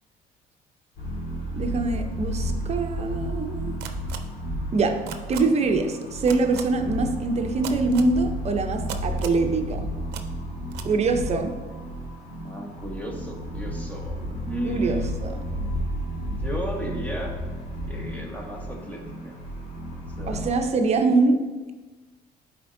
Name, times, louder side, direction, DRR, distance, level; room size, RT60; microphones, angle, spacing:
sound 1, 1.0-20.6, equal, 75° left, 2.0 m, -32 dB
voice 1, 1.5-3.8 4.7-4.9 5.3-9.9 10.8-11.5 14.6-15.3 20.3-21.4, right 3 dB, 40° right, 5 dB, 0.7 m, -24 dB
sound 2, 3.8-4.2 5.1-5.4 6.3-6.6 7.6-8.1 8.9-9.4 10.1-10.2 10.7-10.9, right 10 dB, 80° right, 0.6 m, -35 dB
voice 2, 12.4-15.2 16.2-17.3 17.9-19.4 19.9-20.6, equal, 10° left, 0 dB, 1.3 m, -34 dB
11.0 x 4.3 x 2.6 m, 1.2 s
cardioid pair, 110°, 17 cm